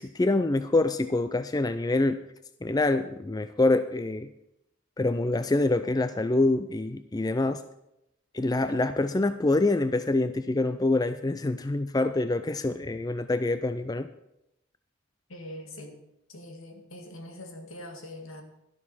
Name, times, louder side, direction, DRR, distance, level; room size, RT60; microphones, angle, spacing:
voice 1, 0.0-2.2 2.6-4.3 5.0-7.6 8.3-14.1, left 2 dB, 20° left, 11 dB, 0.4 m, -26 dB
voice 2, 15.3-16.0 16.3-18.4, left 1 dB, 85° left, 4 dB, 2.1 m, -43 dB
12.5 x 12.0 x 4.3 m, 0.84 s
head